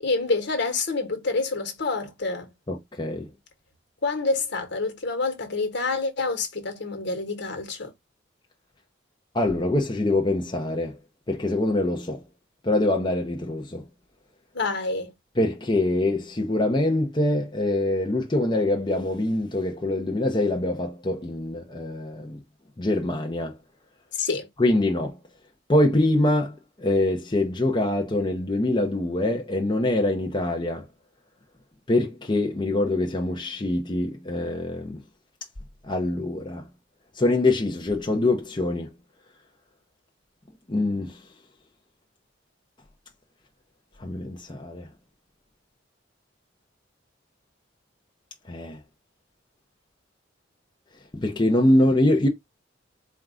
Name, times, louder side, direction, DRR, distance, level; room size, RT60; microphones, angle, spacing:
voice 1, 0.0-2.5 4.0-7.9 14.5-15.1 24.2-24.5, left 3 dB, 65° left, 1.2 m, -27 dB
voice 2, 2.7-3.3 9.3-11.0 11.3-12.2 12.6-13.8 15.4-22.4 22.8-23.6 24.6-25.2 25.7-30.9 31.9-35.0 35.9-36.6 37.2-38.9 40.7-41.2 44.0-44.9 48.5-48.8 51.1-52.3, left 1 dB, 25° left, 0.6 m, -24 dB
4.4 x 2.4 x 3.6 m
head